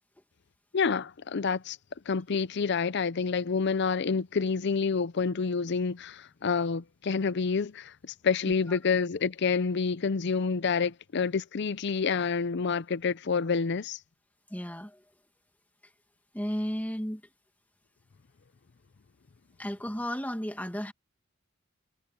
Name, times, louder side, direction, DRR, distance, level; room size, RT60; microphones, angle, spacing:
voice 1, 0.7-1.8 2.1-14.0, left 5 dB, 60° left, 0.6 m, -28 dB
voice 2, 8.5-8.8 14.5-15.0 16.3-17.2 19.6-20.9, equal, 10° left, 2.2 m, -34 dB
head